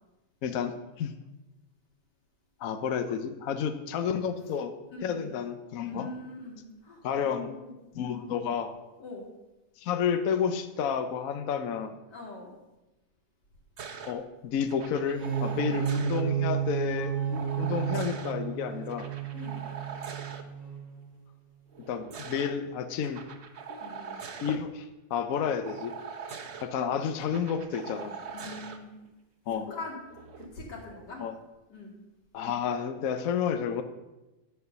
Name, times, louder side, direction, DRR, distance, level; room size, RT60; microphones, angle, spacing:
voice 1, 0.4-0.7 1.0-1.1 2.6-4.7 5.0-6.1 7.0-7.5 7.9-8.7 9.8-11.9 14.1-19.1 21.9-23.2 23.7-25.9 26.6-28.2 29.5-29.8 31.2-31.3 32.3-33.8, left 7 dB, 65° left, 8 dB, 1.0 m, -31 dB
voice 2, 4.9-5.4 5.8-7.7 8.1-8.4 9.0-9.3 12.1-12.5 15.6-15.8 19.3-19.8 23.8-24.2 28.3-29.0 29.7-30.0 30.4-31.2 31.7-31.9, left 2 dB, 85° left, -2 dB, 2.9 m, -43 dB
sound 1, 13.8-14.1 14.7-16.2 17.3-18.3 18.9-20.4 21.7-22.5 23.0-24.6 25.7-26.7 27.2-28.8 30.1-30.5, right 6 dB, 50° right, 0.9 m, -42 dB
sound 2, 15.0-20.9, right 9 dB, ahead, 2.2 m, -32 dB
10.5 x 4.5 x 6.6 m, 1.0 s
omnidirectional pair, 1.8 m